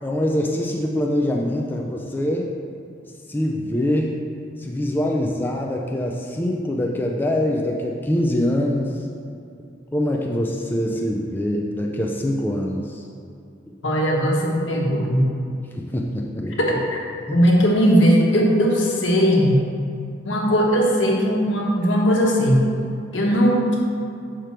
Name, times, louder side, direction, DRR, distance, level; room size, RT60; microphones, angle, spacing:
voice 1, 0.0-2.5 3.3-4.2 4.6-9.0 9.9-13.0 15.7-16.6 17.3-17.4, left 1 dB, 10° left, -1 dB, 0.4 m, -24 dB
voice 2, 13.8-15.3 16.6-17.0 17.3-19.6 20.2-22.6 23.1-23.8, equal, 70° left, -2 dB, 1.2 m, -18 dB
6.1 x 5.0 x 4.4 m, 2.5 s
head